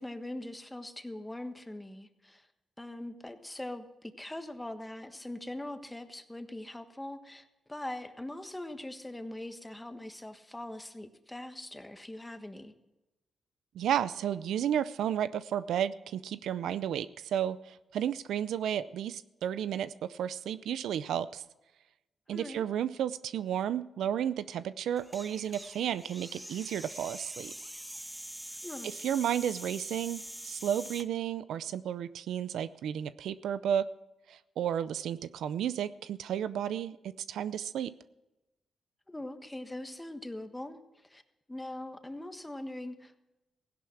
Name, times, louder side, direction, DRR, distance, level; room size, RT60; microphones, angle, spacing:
voice 1, 0.0-2.5 2.8-12.7 22.3-22.6 28.5-28.9 39.1-41.2 41.5-43.2, left 1 dB, 10° left, 8 dB, 1.4 m, -42 dB
voice 2, 13.7-21.4 22.3-27.5 28.8-33.9 34.3-37.9, right 9 dB, 90° right, 15 dB, 0.5 m, -32 dB
sound 1, 24.9-31.1, right 1 dB, 5° right, 0.6 m, -44 dB
16.0 x 11.0 x 5.9 m, 1.0 s
cardioid pair, 85°, 0 cm